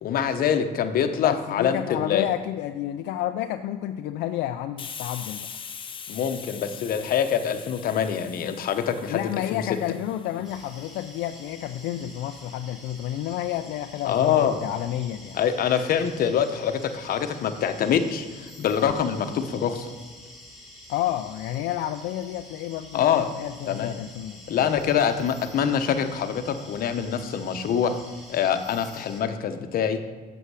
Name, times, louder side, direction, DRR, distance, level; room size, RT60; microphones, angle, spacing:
voice 1, 0.0-2.3 6.1-9.2 9.5-9.6 14.0-14.6 15.3-19.9 22.9-23.3 23.7-24.0 24.5-28.0 28.3-30.0, left 8 dB, 60° left, 8 dB, 0.9 m, -25 dB
voice 2, 1.2-5.5 9.1-15.4 20.9-24.7, left 12 dB, 85° left, 7 dB, 0.4 m, -30 dB
Hiss, 4.8-12.2, left 7 dB, 30° left, 0.6 m, -42 dB
sound 1, 10.4-29.2, left 1 dB, ahead, 2.7 m, -47 dB
8.3 x 7.1 x 4.8 m, 1.5 s
cardioid pair, 110°, 17 cm